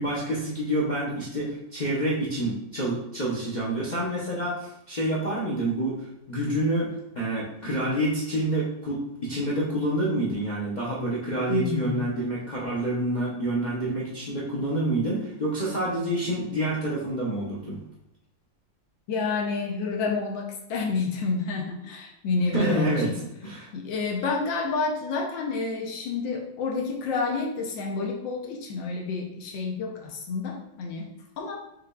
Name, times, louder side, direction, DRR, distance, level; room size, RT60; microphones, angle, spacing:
voice 1, 0.0-17.8 22.5-23.1 23.4-23.7, right 1 dB, 70° left, -7 dB, 0.4 m, -28 dB
voice 2, 11.5-12.0 19.1-20.4 20.7-23.2 23.7-31.1 31.4-31.6, left 4 dB, 85° left, 0 dB, 1.5 m, -29 dB
6.0 x 3.3 x 2.3 m, 0.81 s
omnidirectional pair, 2.0 m